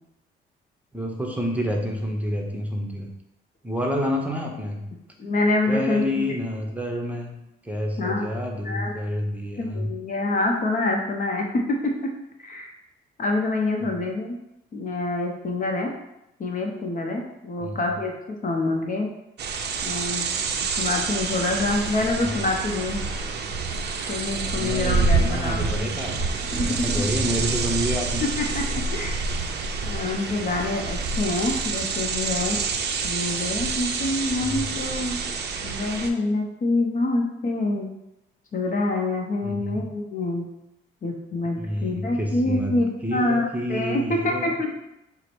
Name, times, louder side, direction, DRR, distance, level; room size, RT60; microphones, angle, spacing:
voice 1, 0.9-3.1 3.6-4.8 5.7-7.3 7.6-9.9 17.6-17.8 24.5-26.2 26.5-28.3 34.4-34.7 39.4-39.9 41.6-44.7, equal, 5° right, 0 dB, 0.7 m, -28 dB
voice 2, 5.2-6.2 8.0-8.3 8.6-9.0 9.6-12.1 12.4-12.7 13.2-14.4 14.7-15.9 16.4-19.1 19.8-20.3 20.8-23.0 24.1-25.9 26.5-27.0 28.4-29.2 29.8-32.6 33.0-35.2 35.6-37.9 38.5-40.4 41.0-44.7, left 2 dB, 45° left, 1 dB, 0.7 m, -26 dB
sound 1, 19.4-36.1, right 4 dB, 60° right, 0.5 m, -27 dB
4.7 x 2.1 x 4.4 m, 0.88 s
cardioid pair, 90°, 20 cm